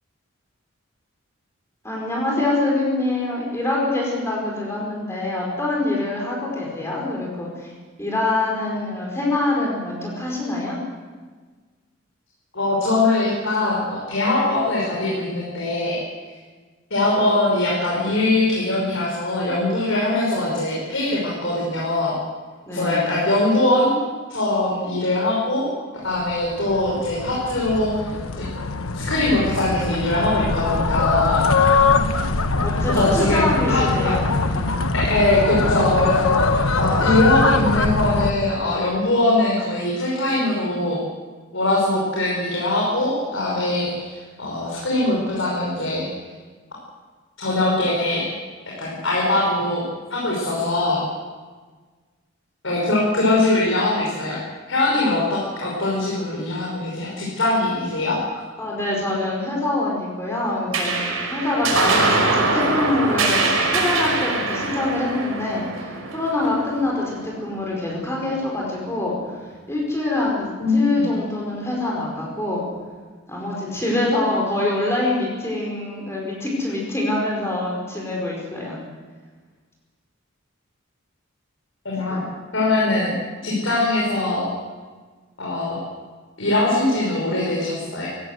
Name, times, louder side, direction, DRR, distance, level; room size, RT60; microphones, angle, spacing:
voice 1, 1.8-7.7 8.0-10.8 22.7-23.1 32.6-34.8 58.6-69.1 69.7-72.6 73.3-78.8 82.1-82.2, left 2 dB, 10° left, -3 dB, 4.9 m, -25 dB
voice 2, 12.5-16.0 16.3-16.4 16.9-22.2 22.7-24.0 24.3-25.7 26.0-28.4 28.9-31.7 32.9-34.1 34.9-41.0 41.5-46.1 47.4-48.3 48.8-49.8 50.1-51.0 52.6-54.4 54.7-58.2 70.6-71.1 81.8-82.2 82.5-83.1 83.4-84.4 85.4-85.8 86.4-88.1, left 2 dB, 70° left, -4 dB, 5.4 m, -22 dB
sound 1, 26.3-38.3, left 4 dB, 85° left, 1.2 m, -22 dB
sound 2, 60.7-67.5, right 3 dB, 80° right, 5.6 m, -23 dB
19.5 x 17.0 x 8.0 m, 1.4 s
head